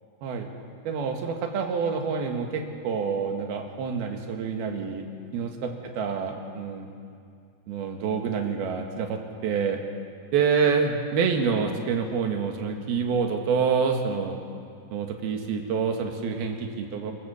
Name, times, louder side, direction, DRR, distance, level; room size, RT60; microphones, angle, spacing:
voice 1, 0.9-5.1 5.3-5.5 6.0-6.9 7.7-9.8 10.3-14.4 14.9-17.1, right 6 dB, 80° right, 3 dB, 3.6 m, -27 dB
28.5 x 15.0 x 7.0 m, 2.4 s
omnidirectional pair, 4.4 m